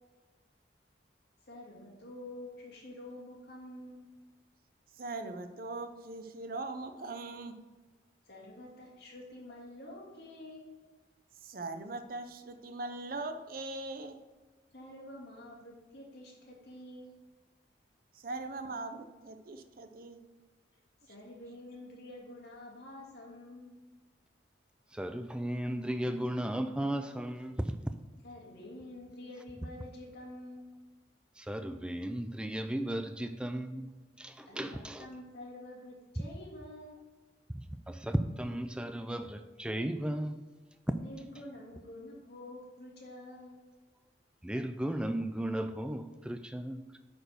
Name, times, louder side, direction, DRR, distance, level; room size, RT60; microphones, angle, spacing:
voice 1, 1.5-4.1 8.2-10.7 14.7-17.2 21.0-23.7 28.2-30.7 34.5-37.0 40.9-43.6, left 1 dB, 60° left, 2.4 m, -48 dB
voice 2, 4.9-7.6 11.4-14.2 18.1-20.2, right 2 dB, 55° right, 0.7 m, -40 dB
voice 3, 24.9-27.8 31.4-35.1 37.5-40.4 44.4-47.0, right 1 dB, 5° right, 0.3 m, -35 dB
9.0 x 4.5 x 5.1 m
head